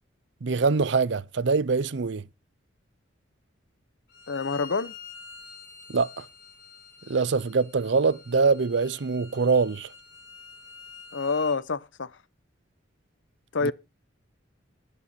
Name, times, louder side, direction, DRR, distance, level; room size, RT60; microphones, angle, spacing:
voice 1, 0.4-2.2 5.9-6.3 7.1-9.9 13.6-13.7, right 4 dB, 65° right, 0.6 m, -24 dB
Bowed string instrument, 4.1-11.6, left 6 dB, 55° left, 7.3 m, -47 dB
voice 2, 4.3-4.9 11.1-12.1 13.5-13.7, left 4 dB, 75° left, 0.8 m, -27 dB
19.5 x 6.9 x 4.2 m
head